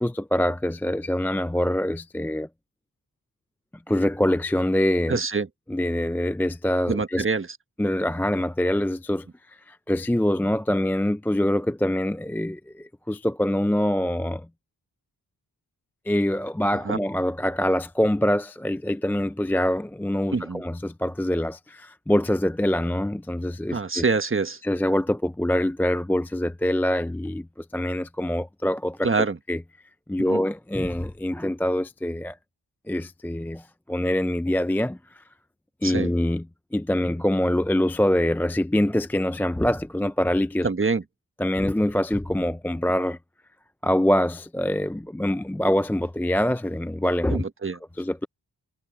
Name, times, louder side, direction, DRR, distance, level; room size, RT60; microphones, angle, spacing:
voice 1, 0.0-2.5 3.9-5.2 5.7-7.2 7.8-9.3 9.7-14.5 16.1-24.0 24.6-29.1 29.5-29.6 30.1-32.4 32.9-35.2 35.8-36.4 36.7-40.7 41.4-43.2 43.8-47.4 48.0-48.3, left 1 dB, 5° left, 0.3 m, -24 dB
voice 2, 5.1-5.5 6.9-7.5 16.8-17.0 20.3-20.6 23.7-24.6 29.0-29.4 30.2-30.4 35.8-36.1 40.6-41.0 47.3-47.8, right 4 dB, 30° right, 1.3 m, -25 dB
wide cardioid pair, 80°, 41 cm